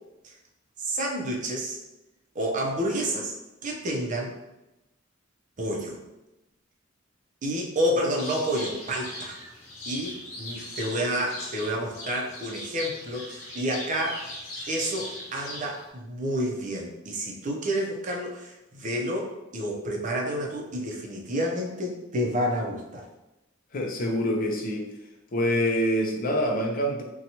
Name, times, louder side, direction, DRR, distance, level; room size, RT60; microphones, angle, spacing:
voice 1, 0.8-1.8 2.3-3.3 3.6-4.3 5.6-6.0 7.4-9.4 9.9-14.3 14.7-23.1, equal, 40° right, 0 dB, 0.5 m, -29 dB
sound 1, 8.2-15.9, left 1 dB, 90° left, 0.7 m, -40 dB
voice 2, 23.7-24.8 25.3-27.0, equal, 45° left, 1 dB, 0.5 m, -25 dB
2.8 x 2.2 x 2.8 m, 0.94 s
head